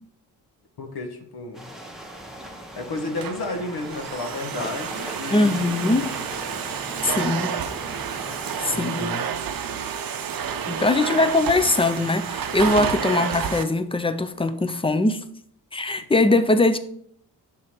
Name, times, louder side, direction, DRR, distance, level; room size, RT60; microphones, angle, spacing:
voice 1, 0.8-1.7 2.8-6.1 8.7-9.2 10.7-10.8 12.6-13.0, left 2 dB, 70° left, 4 dB, 1.1 m, -32 dB
sound 1, 1.5-8.8, equal, ahead, 0.8 m, -39 dB
Domestic sounds home sounds, 3.0-13.6, right 7 dB, 60° right, 0.6 m, -30 dB
voice 2, 5.3-6.1 7.0-7.5 8.6-9.1 10.7-15.2 15.7-16.8, left 2 dB, 15° left, 10 dB, 0.4 m, -21 dB
6.1 x 3.8 x 4.3 m, 0.66 s
cardioid pair, 95°, 40 cm